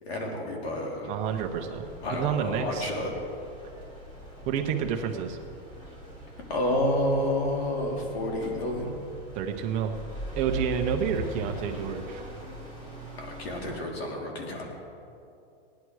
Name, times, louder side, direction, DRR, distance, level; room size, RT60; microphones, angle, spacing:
voice 1, 0.0-1.1 2.0-3.1 6.5-8.9 13.2-14.7, left 1 dB, 90° left, 0 dB, 3.4 m, -29 dB
voice 2, 1.0-1.8 2.1-2.9 4.5-5.4 9.3-9.9 10.4-12.3, right 7 dB, 25° right, 4 dB, 0.7 m, -29 dB
sound 1, 1.2-13.8, right 1 dB, 15° left, 1.9 m, -41 dB
18.5 x 10.5 x 4.8 m, 2.6 s
supercardioid pair, 170°, 30 cm